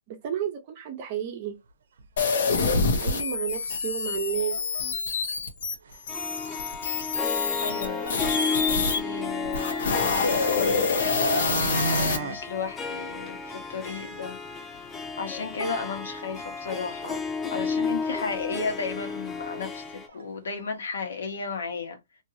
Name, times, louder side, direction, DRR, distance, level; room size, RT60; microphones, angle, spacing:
voice 1, 0.1-1.5 3.0-4.6, right 9 dB, 35° right, 0.9 m, -31 dB
sound 1, 2.0-2.1 2.6-2.7 3.0-3.1 4.1-4.2 4.7-5.0 5.3-5.4 5.7-6.1 7.5-7.6 7.9-8.0 10.3-10.4 10.8-12.4 12.8-12.9 13.3-13.4 13.7-13.8 14.2-14.3 17.1-17.2 17.5-17.7 18.4-18.5 18.9-19.2 19.4-20.2 20.6-20.7, right 4 dB, 75° right, 0.6 m, -33 dB
sound 2, 2.2-9.0 9.4-12.2, left 4 dB, 70° left, 1.2 m, -26 dB
Harp, 6.1-20.1, left 4 dB, 10° left, 0.4 m, -33 dB
voice 2, 7.6-8.1 8.7-11.4 11.9-14.8 15.2-17.2 17.5-22.0, left 4 dB, 85° left, 1.4 m, -34 dB
2.9 x 2.8 x 2.7 m
hypercardioid pair, 170°, 0 cm